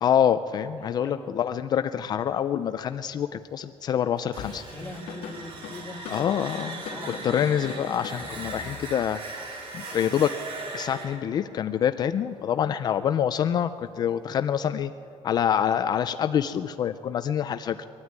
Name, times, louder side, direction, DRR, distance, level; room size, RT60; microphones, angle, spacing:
voice 1, 0.0-4.6 6.1-6.8 7.2-9.2 9.7-10.3 10.7-14.9 15.2-17.8, left 9 dB, 40° left, 11 dB, 0.4 m, -26 dB
voice 2, 0.8-1.3 4.7-6.1 6.9-7.5, left 2 dB, 10° left, 0 dB, 1.9 m, -41 dB
sound 1, 4.2-13.0, right 3 dB, 55° right, 2.9 m, -39 dB
Drum kit / Drum, 4.4-9.2, left 6 dB, 70° left, 2.6 m, -40 dB
22.0 x 13.0 x 9.6 m, 2.6 s
cardioid pair, 175°, 11 cm